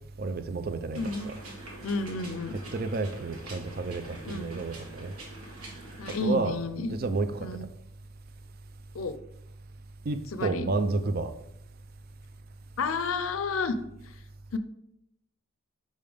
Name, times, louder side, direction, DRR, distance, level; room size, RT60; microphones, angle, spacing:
voice 1, 0.2-1.4 2.5-5.1 6.1-6.6 6.9-7.5 10.1-11.3, right 3 dB, 45° right, 10 dB, 0.4 m, -31 dB
voice 2, 0.9-1.3 1.8-2.5 4.3-4.6 6.0-6.9 7.4-7.6 8.9-9.2 10.3-10.7 12.8-13.7 14.5-14.6, left 3 dB, 70° left, 11 dB, 0.5 m, -31 dB
sound 1, 0.9-6.3, right 1 dB, 85° right, 1.5 m, -45 dB
5.4 x 5.2 x 3.4 m, 0.79 s
head